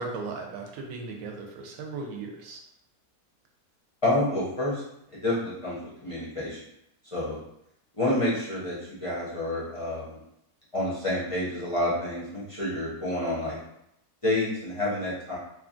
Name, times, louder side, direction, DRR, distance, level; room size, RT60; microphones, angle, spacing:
voice 1, 0.0-2.6, right 3 dB, 75° right, 1 dB, 1.0 m, -37 dB
voice 2, 4.0-4.8 5.2-6.6 7.1-7.4 8.0-10.2 10.7-13.6 14.2-15.4, left 1 dB, 30° left, -8 dB, 0.6 m, -28 dB
3.1 x 2.4 x 2.4 m, 0.78 s
omnidirectional pair, 1.6 m